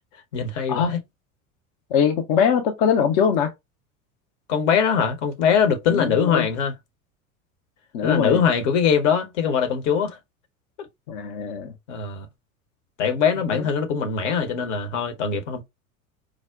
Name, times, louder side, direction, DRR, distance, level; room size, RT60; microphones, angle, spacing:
voice 1, 0.3-1.0 4.5-6.7 8.0-10.2 11.9-12.3 13.0-15.6, left 6 dB, 55° left, 0.8 m, -22 dB
voice 2, 1.9-3.5 5.9-6.5 7.9-8.5 11.1-11.7 13.5-13.6, left 7 dB, 35° left, 0.4 m, -22 dB
4.7 x 2.0 x 2.3 m
figure-of-eight pair, 75°, 43 cm